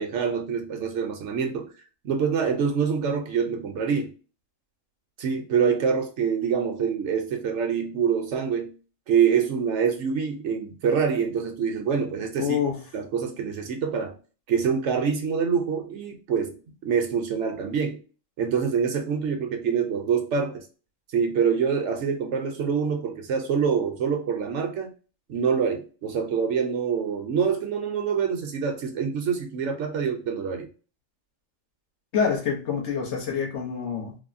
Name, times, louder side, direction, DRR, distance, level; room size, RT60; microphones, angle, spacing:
voice 1, 0.0-1.7 2.0-4.1 5.2-8.7 9.1-12.6 12.9-14.1 14.5-18.0 18.4-20.6 21.1-24.9 25.3-30.7, right 6 dB, 70° right, 4 dB, 0.9 m, -25 dB
voice 2, 12.4-12.8 32.1-34.2, left 7 dB, 65° left, 0 dB, 1.1 m, -26 dB
3.3 x 2.1 x 2.4 m, 0.35 s
omnidirectional pair, 1.4 m